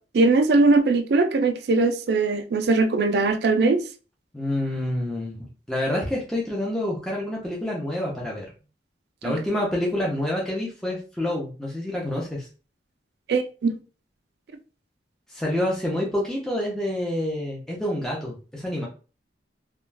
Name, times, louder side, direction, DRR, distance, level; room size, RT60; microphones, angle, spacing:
voice 1, 0.1-3.8 9.2-9.3 13.3-13.7, right 3 dB, 60° right, 0.4 m, -20 dB
voice 2, 4.3-8.4 9.2-12.5 15.3-18.9, left 1 dB, 5° left, 0.5 m, -27 dB
2.4 x 2.2 x 3.2 m
head